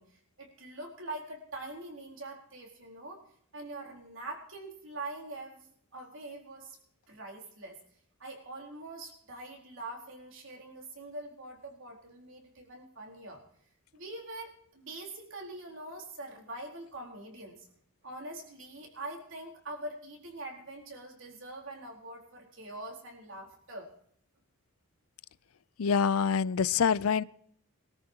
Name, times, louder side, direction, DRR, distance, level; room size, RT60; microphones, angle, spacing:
voice 1, 0.0-3.2 3.5-6.8 7.1-7.8 8.2-13.4 13.9-17.7 18.0-23.9, right 2 dB, 60° right, 4.1 m, -44 dB
voice 2, 25.8-27.2, left 6 dB, 80° left, 0.5 m, -26 dB
23.5 x 13.5 x 2.9 m
head